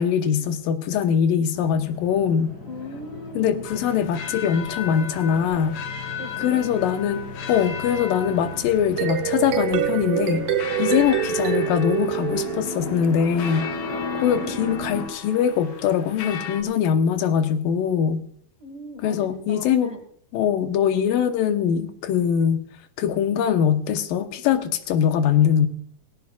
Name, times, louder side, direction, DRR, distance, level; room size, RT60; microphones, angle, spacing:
voice 1, 0.0-2.5 3.4-5.8 6.4-10.5 10.8-13.7 14.2-18.2 19.0-20.0 20.3-22.6 23.0-25.7, left 8 dB, 90° left, 8 dB, 2.8 m, -22 dB
sound 1, 1.5-15.1, left 2 dB, 30° left, 2.4 m, -36 dB
voice 2, 2.7-3.6 6.2-6.6 10.9-11.2 14.0-14.7 18.6-20.0, left 2 dB, 25° right, 4 dB, 0.8 m, -37 dB
sound 2, 3.6-16.6, left 7 dB, 70° left, 2.6 m, -37 dB
sound 3, 8.8-13.1, right 10 dB, 70° right, 2.0 m, -25 dB
19.0 x 17.0 x 2.4 m, 0.62 s
omnidirectional pair, 3.9 m